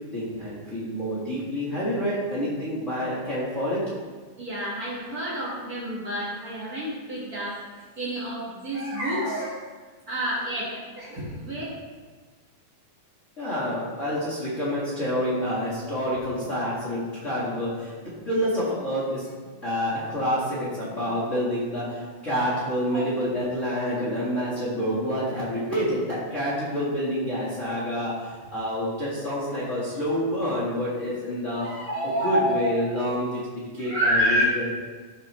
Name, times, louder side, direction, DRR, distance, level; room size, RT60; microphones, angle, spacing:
voice 1, 0.1-3.8 13.4-17.9 18.2-19.3 19.6-31.6 32.0-34.7, equal, 55° left, -7 dB, 0.8 m, -28 dB
voice 2, 4.4-7.6 8.0-9.6 10.1-11.6 22.3-22.5 22.9-23.1 31.6-32.7 33.8-34.4, equal, 55° right, -7 dB, 1.0 m, -28 dB
12.5 x 5.5 x 3.1 m, 1.4 s
omnidirectional pair, 4.2 m